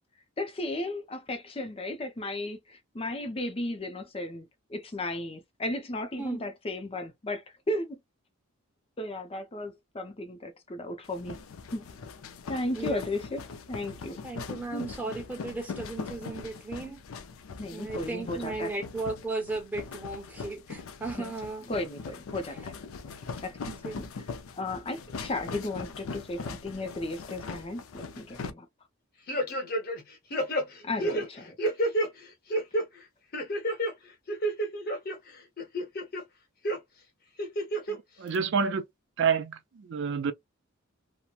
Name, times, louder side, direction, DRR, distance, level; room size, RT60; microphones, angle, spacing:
voice 1, 0.4-8.0 9.0-11.4 11.7-11.8 12.5-14.2 14.7-14.9 17.6-18.7 21.2-21.3 21.7-22.7 23.4-23.7 24.0-24.1 24.5-28.7 30.8-31.6, left 2 dB, 25° left, 0.5 m, -35 dB
sound 1, 11.0-28.5, left 5 dB, 75° left, 0.4 m, -41 dB
voice 2, 14.2-17.0 17.7-21.6 23.6-24.0, right 3 dB, 10° right, 0.9 m, -36 dB
sound 2, 29.3-30.0 30.3-32.1 32.5-32.8 33.3-33.9 34.3-35.1 35.6-36.2 36.6-36.8 37.4-38.0 38.3-38.4, right 1 dB, 45° left, 0.8 m, -29 dB
voice 3, 37.9-38.8 39.2-40.3, right 6 dB, 55° right, 0.4 m, -28 dB
2.9 x 2.1 x 2.3 m
head